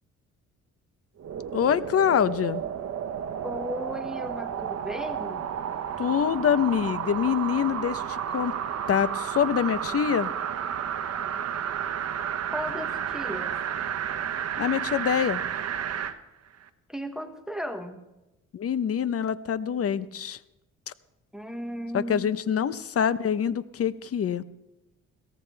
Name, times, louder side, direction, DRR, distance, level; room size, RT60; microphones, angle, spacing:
sound 1, 1.2-16.2 16.6-16.7, right 8 dB, 55° right, 1.2 m, -32 dB
voice 1, 1.5-2.6 6.0-8.5 8.9-10.3 14.6-15.4 18.5-20.4 21.9-24.4, left 8 dB, 50° left, 15 dB, 0.9 m, -25 dB
voice 2, 3.4-5.5 12.5-13.5 16.9-18.0 21.3-22.3, equal, ahead, 6 dB, 1.5 m, -35 dB
22.5 x 17.5 x 3.4 m, 0.94 s
cardioid pair, 90°, 30 cm